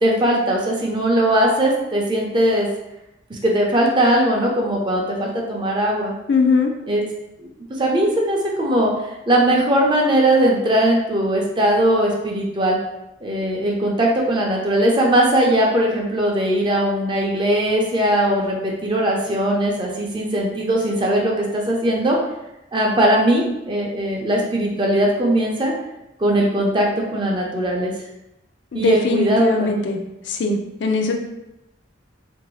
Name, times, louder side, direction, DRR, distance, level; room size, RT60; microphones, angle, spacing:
voice 1, 0.0-2.7 3.3-6.2 6.9-7.0 7.4-8.9 9.3-12.8 13.2-22.2 22.7-25.7 26.2-27.9 28.7-29.7, right 1 dB, 25° right, -1 dB, 0.5 m, -19 dB
voice 2, 6.3-6.7 28.7-30.0 30.2-31.2, left 3 dB, 65° left, 3 dB, 0.4 m, -20 dB
3.0 x 2.6 x 3.1 m, 0.90 s
head